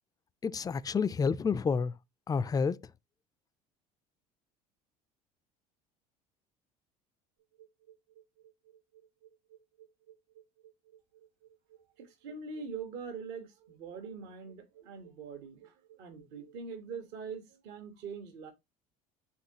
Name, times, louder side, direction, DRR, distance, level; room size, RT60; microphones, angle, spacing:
voice 1, 0.4-1.9 2.3-2.8, left 5 dB, 20° left, 0.5 m, -29 dB
sound 1, 7.4-16.6, right 11 dB, 85° right, 4.8 m, -59 dB
voice 2, 12.0-18.5, right 5 dB, 65° right, 1.5 m, -43 dB
10.5 x 3.8 x 2.9 m
hypercardioid pair, 70°, 19 cm